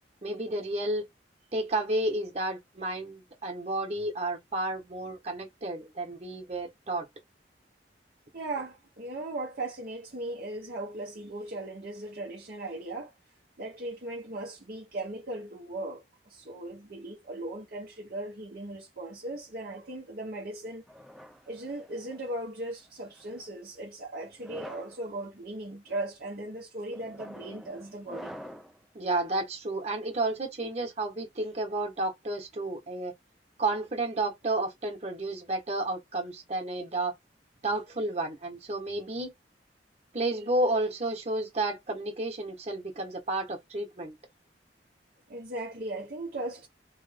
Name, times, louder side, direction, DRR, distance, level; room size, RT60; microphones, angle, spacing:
voice 1, 0.2-1.1 1.5-7.1 28.9-33.1 33.6-37.1 37.6-39.3 40.1-44.2, right 2 dB, 40° right, 1.3 m, -31 dB
voice 2, 8.3-13.1 13.6-20.8 21.5-28.4 45.3-46.7, right 2 dB, 55° right, 0.9 m, -38 dB
sound 1, 20.9-22.3 23.1-23.5 24.3-25.0 25.6-26.0 26.9-28.8, equal, ahead, 0.4 m, -46 dB
3.2 x 3.1 x 3.5 m
head